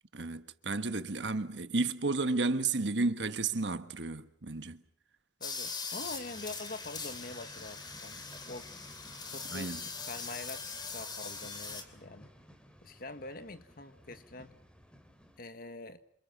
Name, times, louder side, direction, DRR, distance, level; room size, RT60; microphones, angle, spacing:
voice 1, 0.1-4.8 9.5-9.8, right 3 dB, 80° right, 1.4 m, -32 dB
voice 2, 5.4-8.7 9.3-9.7 10.1-12.3 12.8-14.6 15.4-16.0, left 2 dB, 55° left, 1.7 m, -45 dB
sound 1, 5.4-11.8, left 4 dB, 25° left, 2.9 m, -41 dB
sound 2, 6.0-15.4, equal, 5° left, 3.1 m, -56 dB
27.5 x 27.5 x 6.0 m
head